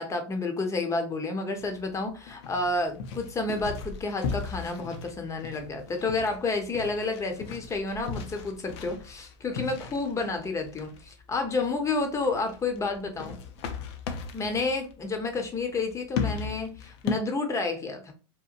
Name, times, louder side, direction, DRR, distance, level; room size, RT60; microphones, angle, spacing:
voice 1, 0.0-13.4 14.3-18.1, left 3 dB, 20° left, 0.7 m, -30 dB
sound 1, 1.6-17.1, left 6 dB, 60° left, 0.5 m, -38 dB
2.9 x 2.1 x 2.4 m
hypercardioid pair, 105°, 16 cm